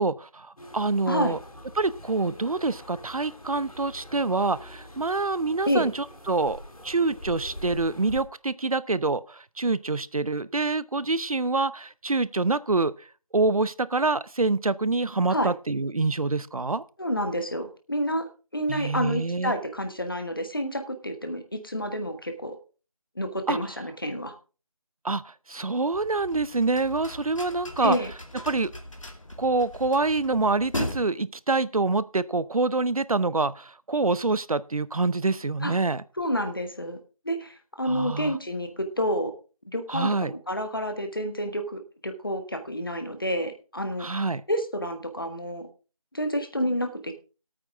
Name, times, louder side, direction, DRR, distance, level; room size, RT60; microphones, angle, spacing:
voice 1, 0.0-1.4 1.8-13.1 13.3-16.8 18.7-19.5 23.5-23.6 25.0-28.0 28.5-28.7 29.4-36.0 37.9-38.4 39.9-40.3 44.0-44.4, right 3 dB, 80° right, 18 dB, 0.7 m, -26 dB
sound 1, 0.6-8.2, left 1 dB, 90° left, 4.3 m, -44 dB
voice 2, 17.0-22.6 23.1-24.3 27.8-28.1 35.6-35.7 36.2-37.0 37.2-39.3 39.7-44.1 44.5-45.7 46.1-47.1, equal, 40° left, 7 dB, 1.5 m, -29 dB
sound 2, 25.9-31.0, left 1 dB, 65° left, 2.5 m, -38 dB
16.0 x 8.9 x 3.6 m, 0.34 s
figure-of-eight pair, 180°, 18 cm